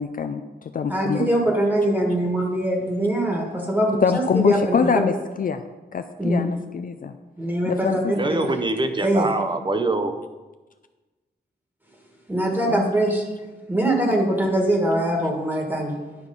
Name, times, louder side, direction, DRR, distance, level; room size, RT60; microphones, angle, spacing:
voice 1, 0.0-1.3 4.0-5.6 5.9-7.2 7.7-8.1 12.7-12.9, left 6 dB, 50° left, 9 dB, 0.4 m, -24 dB
voice 2, 0.9-4.9 6.2-6.4 7.4-8.5 9.0-9.3 12.3-13.2 13.7-16.0, right 1 dB, 10° right, 0 dB, 1.5 m, -22 dB
voice 3, 8.1-10.2, right 2 dB, 25° right, 8 dB, 0.7 m, -24 dB
10.5 x 4.8 x 5.3 m, 1.2 s
wide cardioid pair, 135°, 18 cm